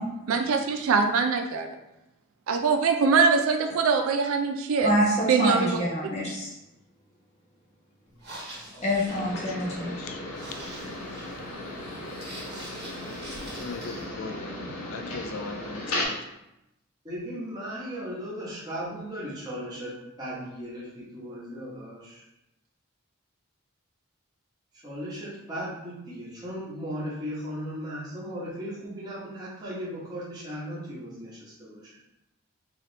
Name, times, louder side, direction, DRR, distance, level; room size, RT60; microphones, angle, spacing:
voice 1, 0.3-1.7 2.5-4.9 5.3-5.8, right 5 dB, 75° right, 6 dB, 0.4 m, -23 dB
voice 2, 4.8-6.5 8.8-9.9, equal, 30° left, -4 dB, 1.0 m, -26 dB
sound 1, 8.1-14.1, right 1 dB, 50° right, 1.2 m, -45 dB
sound 2, 9.1-16.1, left 1 dB, 90° left, 0.9 m, -36 dB
voice 3, 9.6-10.2 13.5-14.6 14.9-16.2, left 4 dB, 75° left, 5 dB, 0.4 m, -39 dB
voice 4, 17.0-22.2 24.8-31.8, equal, 20° right, -8 dB, 1.2 m, -37 dB
3.1 x 2.9 x 3.9 m, 0.88 s
head